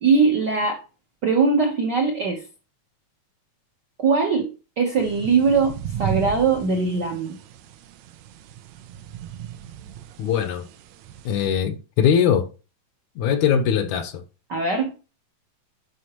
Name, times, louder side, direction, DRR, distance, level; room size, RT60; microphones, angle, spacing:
voice 1, 0.0-0.8 1.2-2.4 4.0-4.5 4.8-7.4 14.5-14.9, right 4 dB, 60° right, 1.1 m, -21 dB
sound 1, 5.0-11.5, right 10 dB, 75° right, 1.7 m, -35 dB
voice 2, 10.2-10.7 11.3-12.5 13.2-14.2, left 8 dB, 80° left, 2.2 m, -21 dB
9.7 x 4.7 x 3.0 m
omnidirectional pair, 3.3 m